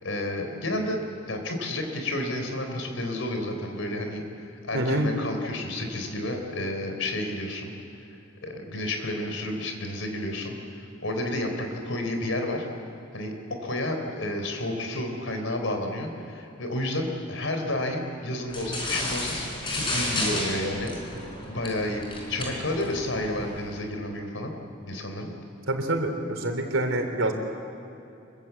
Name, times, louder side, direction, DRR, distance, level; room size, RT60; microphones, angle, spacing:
voice 1, 0.0-7.7 8.4-12.7 13.1-24.5 24.9-25.3, left 1 dB, 85° left, 4 dB, 3.9 m, -31 dB
voice 2, 4.7-5.1 25.7-27.3, right 1 dB, 85° right, 4 dB, 3.5 m, -26 dB
sound 1, 18.5-23.8, left 1 dB, 25° left, 5.2 m, -32 dB
26.0 x 22.0 x 8.3 m, 2.8 s
head